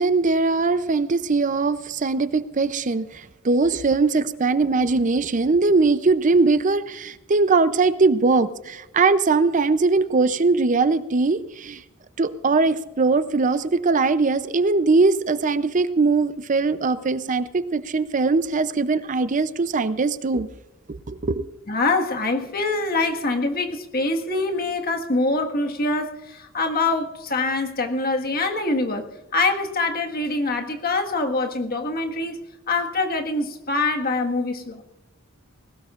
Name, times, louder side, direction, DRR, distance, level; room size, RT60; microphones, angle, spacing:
voice 1, 0.0-11.8 12.2-20.5 20.9-21.4, right 3 dB, 35° right, 0.5 m, -21 dB
voice 2, 21.7-32.4 32.7-34.8, left 3 dB, 45° left, 1.6 m, -24 dB
20.0 x 18.0 x 2.5 m
head